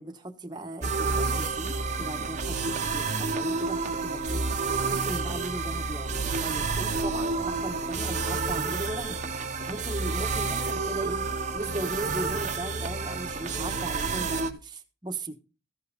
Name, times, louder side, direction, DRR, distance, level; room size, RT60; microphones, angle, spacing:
voice 1, 0.0-4.5 4.8-9.3 9.7-15.4, right 1 dB, 20° right, 1.1 m, -38 dB
sound 1, 0.8-14.5, right 4 dB, 35° right, 0.9 m, -29 dB
15.0 x 5.5 x 5.2 m
head